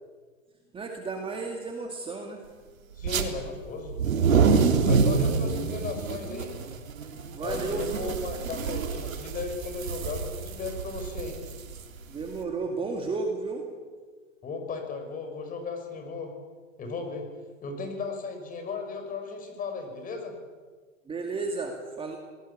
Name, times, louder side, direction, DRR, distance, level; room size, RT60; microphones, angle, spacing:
voice 1, 0.7-2.4 5.5-5.7 7.3-8.1 12.1-13.6 21.1-22.2, right 3 dB, 15° right, 2 dB, 2.2 m, -33 dB
voice 2, 3.0-4.0 4.9-6.5 7.4-11.4 14.4-16.3 16.8-17.3 17.6-20.3, left 4 dB, 20° left, 5 dB, 5.7 m, -36 dB
sound 1, 3.0-3.3 3.8-12.4, right 5 dB, 85° right, 3.5 m, -27 dB
25.0 x 19.5 x 8.5 m, 1.5 s
hypercardioid pair, 135°, 40 cm